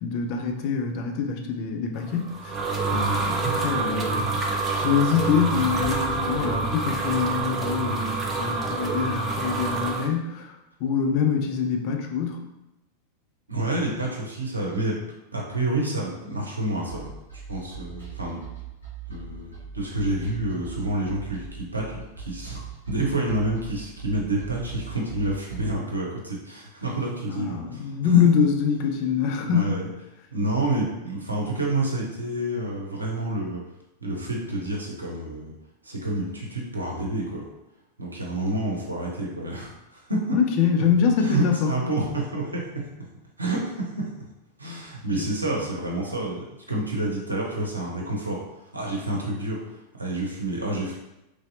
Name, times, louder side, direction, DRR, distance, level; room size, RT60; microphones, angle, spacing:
voice 1, 0.0-2.6 2.9-10.6 10.8-12.5 27.3-29.8 40.3-41.7, left 7 dB, 45° left, 3 dB, 0.4 m, -25 dB
sound 1, 2.1-10.1, right 3 dB, 25° right, 0.4 m, -27 dB
voice 2, 13.5-15.0 15.3-18.4 19.1-28.3 29.5-29.9 30.3-33.6 34.0-35.5 35.8-37.5 38.0-40.4 41.2-42.9 43.4-44.1 44.6-49.6 49.9-50.9, right 2 dB, 80° right, -2 dB, 0.7 m, -29 dB
sound 2, 16.9-25.8, right 7 dB, 80° left, 1.0 m, -40 dB
3.1 x 2.6 x 2.7 m, 0.93 s
figure-of-eight pair, 90°, 0 cm